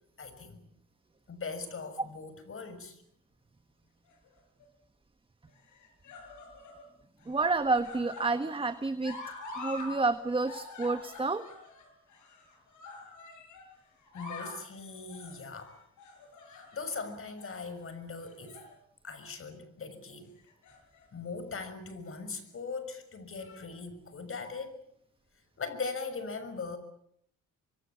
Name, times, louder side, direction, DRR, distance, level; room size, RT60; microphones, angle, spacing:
voice 1, 0.2-0.6 1.3-3.0 14.1-15.9 16.4-18.6 19.0-20.3 21.1-24.8 25.6-26.8, left 4 dB, 45° left, 11 dB, 6.3 m, -40 dB
sound 1, 4.1-4.7 5.6-6.8 7.2-9.9 10.2-13.7 14.0-14.6 15.1-15.4 16.0-17.0 17.4-17.6 18.2-18.7 19.1-19.3 20.4-21.0 21.9-22.0, left 2 dB, 75° left, 7.5 m, -46 dB
voice 2, 7.2-9.2 9.5-11.5, right 3 dB, 15° right, 10 dB, 1.5 m, -29 dB
26.0 x 23.0 x 8.6 m, 0.71 s
cardioid pair, 90°, 30 cm